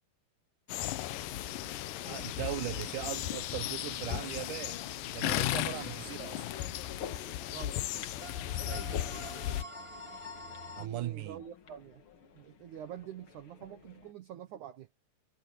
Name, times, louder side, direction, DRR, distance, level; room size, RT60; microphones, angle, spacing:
sound 1, 0.7-9.6, left 15 dB, 80° left, 2.0 m, -36 dB
sound 2, 1.1-10.9, left 1 dB, 15° left, 5.2 m, -49 dB
voice 1, 2.1-4.8 5.1-6.5 8.4-9.1 10.8-11.4, right 14 dB, 80° right, 1.8 m, -39 dB
sound 3, 5.8-14.1, left 7 dB, 50° left, 1.8 m, -50 dB
voice 2, 7.5-7.8 10.8-12.0 12.3-14.9, right 9 dB, 65° right, 2.2 m, -46 dB
omnidirectional pair, 4.8 m